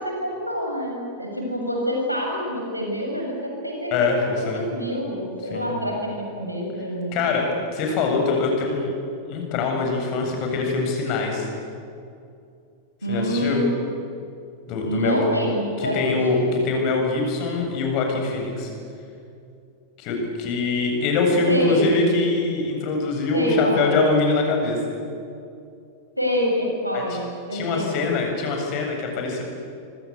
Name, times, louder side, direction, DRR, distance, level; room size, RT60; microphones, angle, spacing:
voice 1, 0.0-7.5 13.0-13.8 14.8-16.6 21.5-21.9 23.3-23.9 26.2-28.2, equal, 90° right, 0 dB, 7.3 m, -26 dB
voice 2, 3.9-4.6 5.5-5.7 7.1-8.9 9.3-11.5 13.1-13.6 14.7-15.2 15.8-18.7 20.0-24.8 26.9-27.2 27.5-29.4, left 3 dB, 40° left, 2 dB, 7.8 m, -23 dB
26.0 x 25.5 x 8.3 m, 2.5 s
figure-of-eight pair, 90°, 0 cm